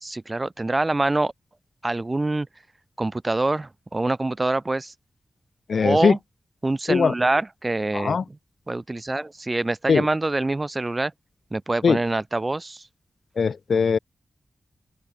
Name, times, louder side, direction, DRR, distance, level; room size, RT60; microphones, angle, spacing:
voice 1, 0.0-1.3 1.8-2.5 3.0-4.9 5.8-6.2 6.6-8.4 8.7-11.1 11.5-12.8, right 2 dB, 20° right, 1.3 m, -25 dB
voice 2, 5.7-6.1 6.9-7.1 7.9-8.2 9.9-10.0 11.8-12.0 13.4-14.0, left 5 dB, 60° left, 1.4 m, -20 dB
open air
wide cardioid pair, 160°, 0 cm